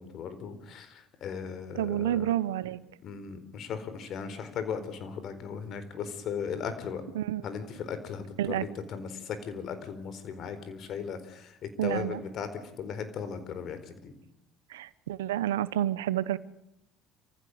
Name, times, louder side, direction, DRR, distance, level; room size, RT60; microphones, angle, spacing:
voice 1, 0.0-2.3 3.0-7.0 7.4-12.5 12.8-14.1, left 6 dB, 55° left, 4.2 m, -37 dB
voice 2, 1.8-2.8 7.1-7.4 8.4-8.7 11.8-12.2 14.7-16.4, right 12 dB, 90° right, 0.9 m, -29 dB
27.5 x 15.5 x 7.9 m
hypercardioid pair, 70°, 0 cm